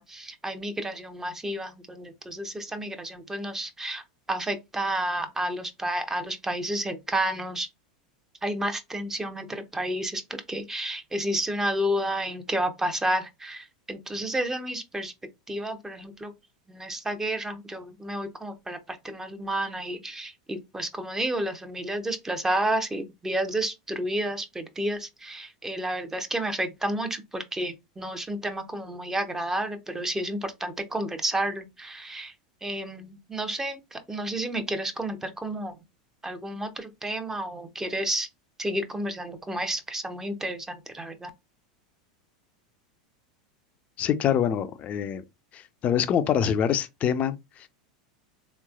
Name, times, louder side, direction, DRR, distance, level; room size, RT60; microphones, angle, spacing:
voice 1, 0.0-4.0 4.3-7.7 8.4-15.1 15.5-16.3 16.7-32.3 32.6-35.8 36.2-38.3 38.6-41.3, right 1 dB, 10° right, 0.8 m, -31 dB
voice 2, 44.0-45.2 45.5-47.7, left 9 dB, 40° left, 0.5 m, -25 dB
3.4 x 3.1 x 2.3 m
hypercardioid pair, 100°, 4 cm